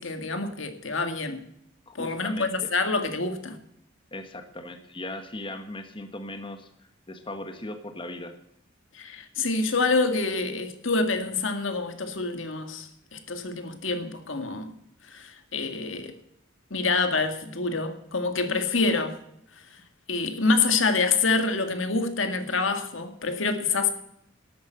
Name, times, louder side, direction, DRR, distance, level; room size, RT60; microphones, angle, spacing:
voice 1, 0.0-1.4 1.9-3.6 8.9-14.7 15.0-16.1 16.7-19.2 19.7-19.8 20.1-23.9, left 3 dB, 85° left, 1.9 m, -27 dB
voice 2, 1.9-2.7 4.1-6.7 7.1-8.4, left 1 dB, 25° left, 1.3 m, -38 dB
12.5 x 9.2 x 8.0 m
head